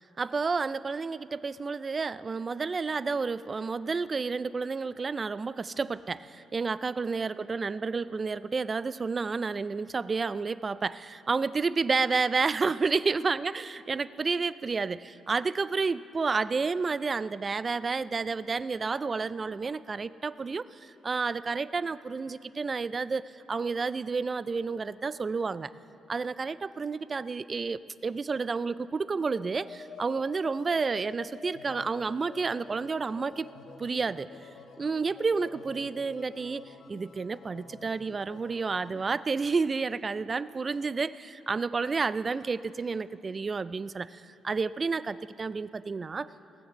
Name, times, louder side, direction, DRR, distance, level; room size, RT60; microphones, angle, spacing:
voice 1, 0.2-23.2 23.5-25.7 26.1-33.5 33.8-34.3 34.8-36.6 36.9-46.3, right 4 dB, 35° right, 16 dB, 0.4 m, -30 dB
sound 1, 29.3-39.1, left 5 dB, 70° left, 1.4 m, -49 dB
18.0 x 7.3 x 7.6 m, 2.9 s
cardioid pair, 90°, 0 cm